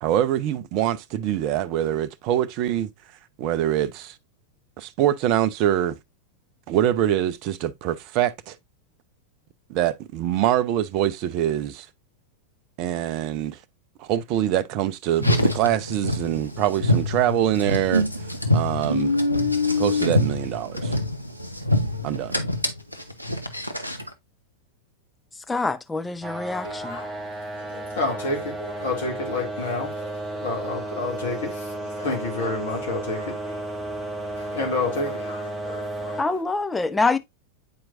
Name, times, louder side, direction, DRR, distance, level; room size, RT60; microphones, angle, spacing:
voice 1, 0.0-2.9 3.4-4.1 4.8-6.0 6.7-8.6 9.7-11.9 12.8-13.6 14.0-18.1 18.5-19.2 19.8-21.0 22.0-22.4, right 11 dB, 40° right, 0.5 m, -24 dB
Car, 15.1-24.1, left 1 dB, 90° left, 0.7 m, -25 dB
voice 2, 25.5-27.0 36.2-37.2, left 3 dB, 10° left, 0.5 m, -25 dB
sound 1, 26.2-36.2, right 2 dB, 10° right, 1.0 m, -33 dB
voice 3, 26.6-27.2 27.5-36.4, left 3 dB, 60° left, 2.1 m, -30 dB
8.6 x 4.5 x 2.5 m
figure-of-eight pair, 90°, 0 cm